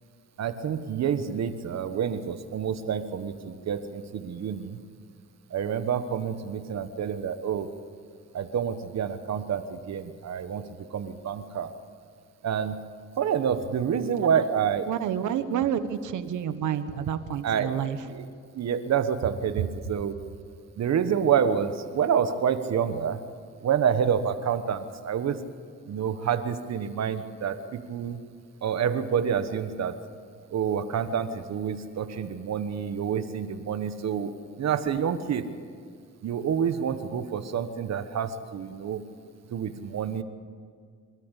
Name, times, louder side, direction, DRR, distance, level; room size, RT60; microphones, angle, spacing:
voice 1, 0.4-4.8 5.5-7.7 8.3-10.6 10.9-11.7 12.4-12.8 13.2-14.9 17.4-17.7 18.0-18.2 18.5-20.1 20.8-23.2 23.6-25.4 25.9-28.2 28.6-30.0 30.5-34.3 34.6-35.5 36.2-39.0 39.5-40.2, right 8 dB, 60° right, 10 dB, 1.3 m, -28 dB
voice 2, 14.9-18.0, right 9 dB, 80° right, 11 dB, 1.3 m, -29 dB
26.0 x 13.0 x 8.3 m, 2.1 s
cardioid pair, 90°, 30 cm